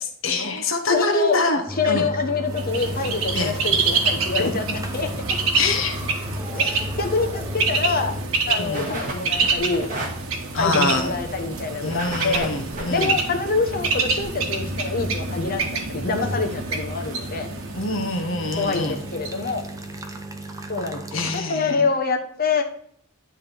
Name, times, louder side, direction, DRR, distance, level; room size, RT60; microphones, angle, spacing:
voice 1, 0.2-1.6 1.9-2.1 3.3-3.5 5.5-6.0 8.5-8.9 10.5-11.1 11.8-13.1 17.7-19.0 21.1-21.9, left 3 dB, 70° left, 4 dB, 1.2 m, -25 dB
voice 2, 0.9-5.1 6.5-8.1 8.5-9.9 10.6-12.5 12.9-17.5 18.6-19.6 20.7-22.6, left 4 dB, 45° left, 4 dB, 1.1 m, -26 dB
sound 1, 1.7-8.4 8.7-8.8 9.5-9.6 10.7-12.9 13.3-13.4 15.5-16.6 16.9-21.4, left 1 dB, 15° right, 0.7 m, -35 dB
Bird, 2.5-20.3, right 4 dB, 90° right, 1.2 m, -27 dB
sound 2, 7.1-7.2 7.6-7.8 8.1-8.2 8.7-9.1 9.4-10.1 11.9-12.8 14.2-14.3 14.9-15.0 15.2-15.3 15.5-15.6, right 2 dB, 40° right, 2.0 m, -31 dB
10.0 x 3.6 x 4.5 m, 0.65 s
head